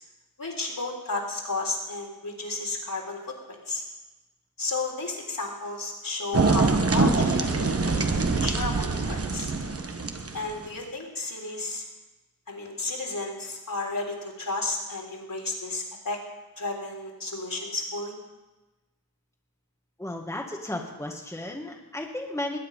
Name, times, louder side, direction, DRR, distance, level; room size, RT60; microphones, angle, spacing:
voice 1, 0.4-3.8 4.6-9.5 10.3-11.9 12.5-16.2 16.6-18.1, left 3 dB, 65° left, -1 dB, 3.7 m, -33 dB
sound 1, 6.3-10.7, right 3 dB, 40° right, 1.1 m, -24 dB
voice 2, 20.0-22.6, left 1 dB, 10° left, 1 dB, 1.6 m, -34 dB
20.5 x 9.4 x 5.3 m, 1.1 s
wide cardioid pair, 80°, 36 cm